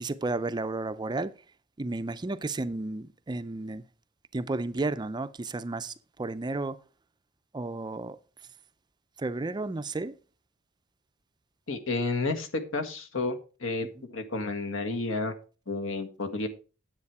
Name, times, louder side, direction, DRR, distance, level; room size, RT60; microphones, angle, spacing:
voice 1, 0.0-1.3 1.8-3.8 4.3-6.8 7.5-8.2 9.2-10.1 13.8-13.9, right 2 dB, 20° right, 0.4 m, -32 dB
voice 2, 11.7-15.3 15.7-16.5, left 3 dB, 70° left, 1.6 m, -31 dB
9.8 x 7.6 x 4.7 m
head